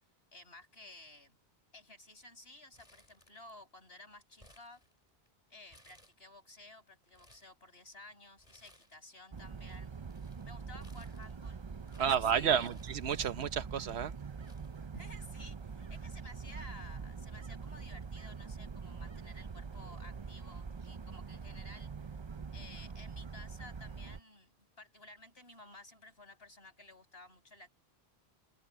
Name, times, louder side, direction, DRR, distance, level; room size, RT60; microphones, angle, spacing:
voice 1, 0.3-1.4 1.7-4.8 5.5-9.9 10.4-11.6 11.9-12.8 14.9-22.2 22.5-27.7, left 2 dB, 70° left, 7.2 m, -54 dB
Crumpling crinkling, 2.7-3.7 4.0-5.3 5.7-6.5 6.9-7.6 8.4-9.2 9.4-13.5 14.1-14.2 14.4-15.5 15.8-15.9 16.8-17.1, left 1 dB, 30° left, 7.9 m, -64 dB
sound 1, 9.3-24.2, right 5 dB, 35° right, 0.5 m, -44 dB
voice 2, 12.0-14.1, right 8 dB, 80° right, 1.2 m, -31 dB
omnidirectional pair, 1.1 m